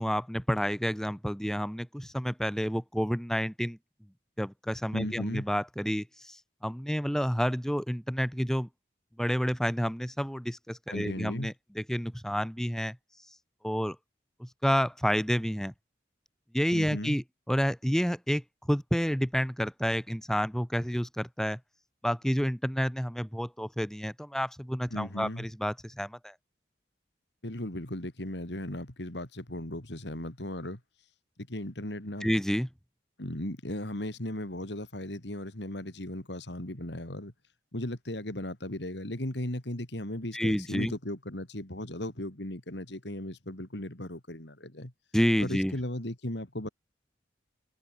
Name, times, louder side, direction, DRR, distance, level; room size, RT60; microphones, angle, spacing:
voice 1, 0.0-3.8 4.4-8.7 9.2-13.0 13.6-14.0 14.4-15.7 16.5-18.4 18.7-21.6 22.0-26.3 32.2-32.7 40.3-40.9 45.1-45.7, equal, 5° left, 4.1 m, -29 dB
voice 2, 4.9-5.5 10.9-11.5 16.7-17.2 24.9-25.5 27.4-30.8 31.5-32.3 33.2-37.3 37.7-44.9 45.4-46.7, left 1 dB, 70° left, 3.3 m, -36 dB
head